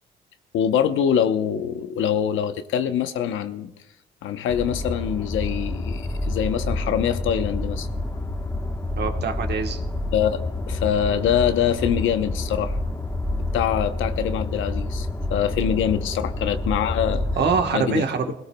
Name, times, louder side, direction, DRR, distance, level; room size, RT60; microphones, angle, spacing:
voice 1, 0.5-3.7 4.2-7.9 10.1-12.8 13.5-17.2 17.7-18.3, left 9 dB, 80° left, 9 dB, 0.9 m, -24 dB
sound 1, 4.5-17.6, left 2 dB, 15° left, 1.2 m, -28 dB
voice 2, 9.0-9.8 17.4-18.3, right 5 dB, 55° right, 5 dB, 1.3 m, -24 dB
20.5 x 17.5 x 2.3 m, 0.93 s
cardioid pair, 90°, 20 cm